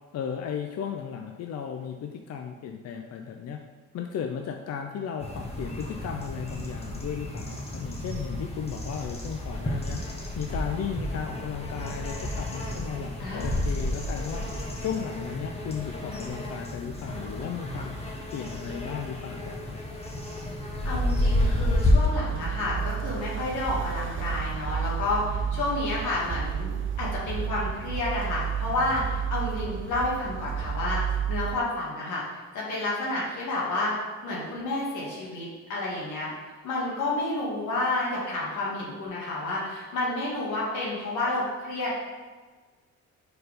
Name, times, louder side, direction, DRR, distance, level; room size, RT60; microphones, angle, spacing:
voice 1, 0.1-3.6 3.9-10.0 10.4-14.4 14.8-17.9 18.3-19.8, left 7 dB, 55° left, 4 dB, 0.5 m, -35 dB
sound 1, 5.2-21.9, left 1 dB, 20° left, 1.2 m, -31 dB
voice 2, 13.2-13.7 20.8-26.7 27.0-31.0 31.3-32.2 32.5-33.9 34.2-36.3 36.6-41.9, left 2 dB, 85° left, -5 dB, 1.8 m, -30 dB
sound 2, 21.4-31.6, right 8 dB, 40° right, 0.5 m, -31 dB
4.6 x 4.2 x 5.0 m, 1.4 s
cardioid pair, 90°, 30 cm